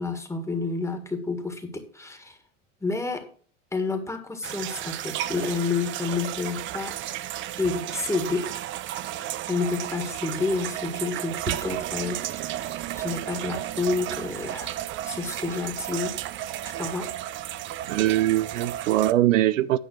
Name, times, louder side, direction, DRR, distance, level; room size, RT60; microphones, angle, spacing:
voice 1, 0.0-2.4 2.8-3.3 3.7-7.0 7.6-8.5 9.5-14.8 15.0-16.2 16.7-17.1, left 4 dB, 5° left, 1.8 m, -29 dB
sound 1, 4.4-19.1, right 13 dB, 35° right, 0.5 m, -33 dB
voice 2, 17.9-19.8, right 14 dB, 90° right, 0.7 m, -22 dB
9.6 x 5.3 x 6.4 m
supercardioid pair, 115°, 37 cm